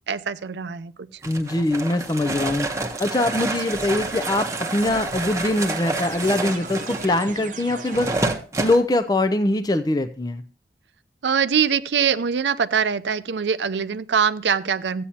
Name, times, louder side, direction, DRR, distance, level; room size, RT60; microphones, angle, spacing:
voice 1, 0.1-0.9 11.2-15.0, right 7 dB, 85° right, 13 dB, 0.5 m, -23 dB
voice 2, 1.2-2.7 3.0-8.1 8.6-10.4, left 2 dB, 20° left, 9 dB, 0.4 m, -22 dB
sound 1, 1.2-8.8, right 2 dB, 15° right, 0.9 m, -29 dB
sound 2, 3.2-8.3, right 4 dB, 45° right, 0.7 m, -37 dB
14.0 x 8.5 x 2.8 m, 0.38 s
head